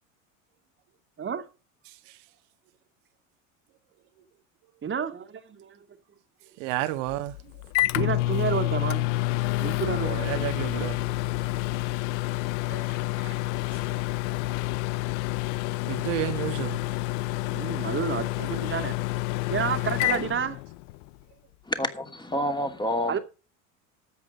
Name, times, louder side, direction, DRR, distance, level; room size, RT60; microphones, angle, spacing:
voice 1, 1.8-2.2 6.6-7.5 10.0-11.1 15.8-16.8, right 14 dB, 65° right, 1.6 m, -31 dB
voice 2, 4.8-5.7 7.9-9.1 9.6-10.2 12.7-12.8 13.2-13.3 17.5-18.9 19.5-20.6 23.1-23.2, right 7 dB, 30° right, 2.2 m, -30 dB
Microwave oven, 7.1-21.1, left 18 dB, 60° left, 0.6 m, -28 dB
voice 3, 21.7-23.2, left 1 dB, 10° left, 2.7 m, -28 dB
13.0 x 8.4 x 5.2 m
hypercardioid pair, 85°, 41 cm